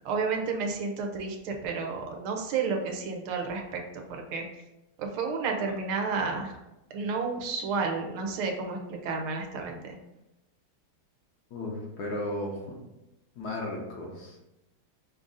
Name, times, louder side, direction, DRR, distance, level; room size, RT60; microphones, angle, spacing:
voice 1, 0.0-4.4 5.0-6.6 6.9-10.0, right 4 dB, 90° right, 3 dB, 1.6 m, -31 dB
voice 2, 11.5-12.8 13.4-14.4, left 1 dB, 60° left, -1 dB, 1.2 m, -35 dB
5.4 x 2.5 x 3.8 m, 0.92 s
omnidirectional pair, 2.2 m